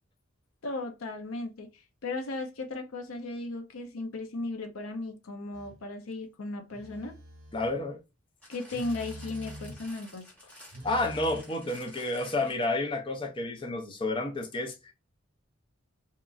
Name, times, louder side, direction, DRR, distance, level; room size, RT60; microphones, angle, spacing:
voice 1, 0.6-7.1 8.5-10.5, left 2 dB, 90° left, 0.6 m, -36 dB
Telephone, 5.5-5.8 6.7-7.8 8.7-9.9 10.7-11.4, equal, 50° right, 0.8 m, -45 dB
voice 2, 7.5-8.0 10.8-14.9, left 2 dB, 25° left, 0.4 m, -30 dB
sound 1, 8.4-12.9 13.6-13.7, equal, 5° left, 0.9 m, -51 dB
2.9 x 2.4 x 2.3 m
head